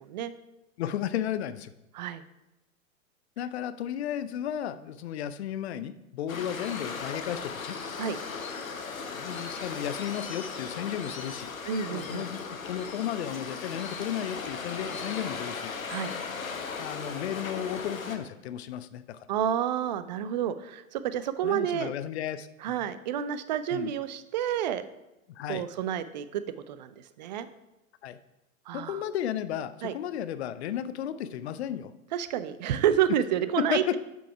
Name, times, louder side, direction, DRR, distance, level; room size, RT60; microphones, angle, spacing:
voice 1, 0.8-1.7 3.4-7.8 9.2-11.5 11.9-15.7 16.8-19.3 21.4-22.5 23.7-23.9 25.4-25.7 28.0-28.2 28.7-31.9 33.6-34.0, left 10 dB, 50° left, 13 dB, 0.5 m, -34 dB
Waves surf, 6.3-18.2, left 5 dB, 75° left, 1.0 m, -37 dB
voice 2, 11.7-12.3 15.9-16.1 19.3-21.9 22.6-24.8 25.5-26.4 26.7-27.5 28.7-29.0 29.8-29.9 32.1-34.0, right 10 dB, 35° right, 13 dB, 0.4 m, -29 dB
7.4 x 5.4 x 4.8 m, 0.95 s
figure-of-eight pair, 100°, 41 cm